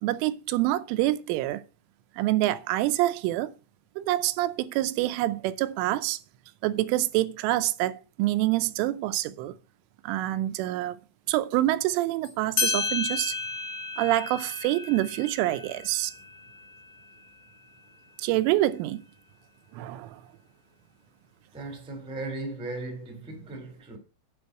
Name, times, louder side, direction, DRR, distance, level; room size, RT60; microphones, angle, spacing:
voice 1, 0.0-1.6 2.2-3.5 4.0-6.2 6.6-9.6 10.0-11.0 11.3-13.3 14.0-16.1 18.2-19.0 19.7-20.2, right 15 dB, 85° right, 3.2 m, -26 dB
sound 1, 12.2-12.3 12.6-17.7, left 4 dB, 55° left, 3.5 m, -33 dB
voice 2, 21.5-24.0, right 2 dB, 5° right, 0.9 m, -37 dB
9.5 x 5.3 x 7.9 m
omnidirectional pair, 5.6 m